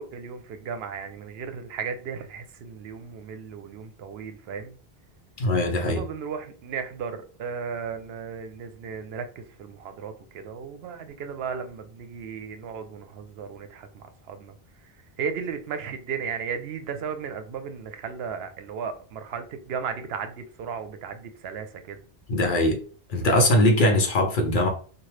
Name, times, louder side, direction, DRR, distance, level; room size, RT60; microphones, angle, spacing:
voice 1, 0.0-4.7 5.8-14.5 15.2-22.0, right 6 dB, 75° right, 0.8 m, -35 dB
voice 2, 5.4-6.0 22.3-22.8 23.1-24.7, left 1 dB, 60° left, 0.8 m, -21 dB
2.9 x 2.3 x 3.2 m
omnidirectional pair, 1.0 m